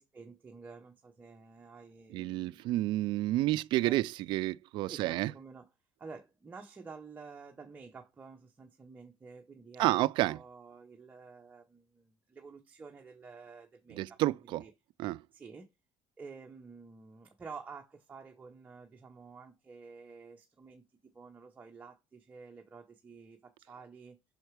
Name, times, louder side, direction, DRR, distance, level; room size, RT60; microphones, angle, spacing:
voice 1, 0.0-2.7 3.8-4.0 4.8-5.7 6.0-14.2 14.6-14.7 15.3-15.7 16.2-24.2, right 4 dB, 20° right, 0.8 m, -50 dB
voice 2, 2.1-5.3 9.8-10.4 13.9-14.6 15.0-15.2, right 16 dB, 65° right, 0.4 m, -30 dB
5.8 x 4.4 x 4.7 m
cardioid pair, 135°, 9 cm